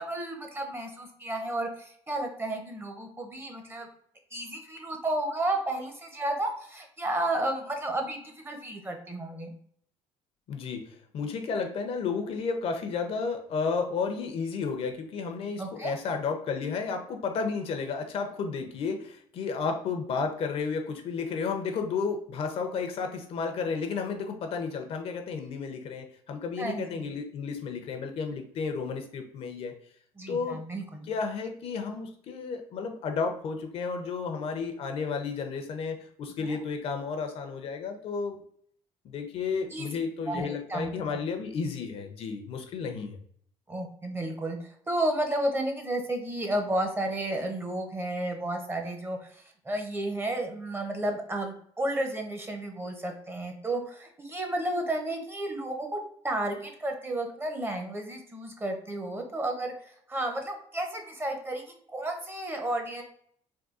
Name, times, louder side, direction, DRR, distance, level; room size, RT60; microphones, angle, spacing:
voice 1, 0.0-3.9 4.3-9.5 15.6-15.9 26.6-27.0 30.2-31.1 36.4-36.6 39.7-39.9 40.3-41.2 43.7-63.0, right 1 dB, 20° right, 3 dB, 0.6 m, -32 dB
voice 2, 10.5-10.8 11.1-29.7 30.3-30.6 31.1-38.4 39.0-43.2, left 5 dB, 60° left, 5 dB, 0.5 m, -32 dB
3.6 x 2.2 x 2.4 m, 0.62 s
cardioid pair, 100°, 11 cm